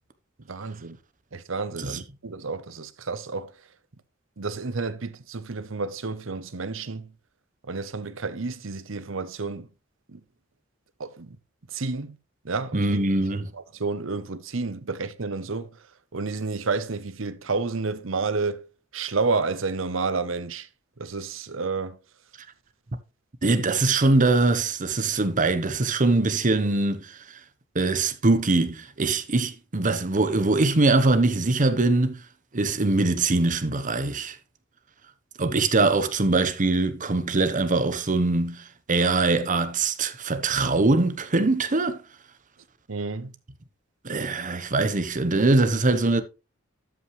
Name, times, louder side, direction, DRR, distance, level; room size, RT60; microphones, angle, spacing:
voice 1, 0.5-1.0 1.3-3.5 4.4-7.1 7.7-9.7 10.1-10.2 11.0-11.4 11.7-12.2 12.4-13.0 13.7-15.7 16.1-18.6 18.9-20.7 21.0-22.0 42.9-43.3, right 4 dB, 75° right, 0.9 m, -30 dB
voice 2, 12.7-13.5 23.4-27.2 27.7-32.2 32.5-34.4 35.4-42.0 44.0-46.2, right 3 dB, 40° right, 0.9 m, -22 dB
12.5 x 5.8 x 3.2 m
head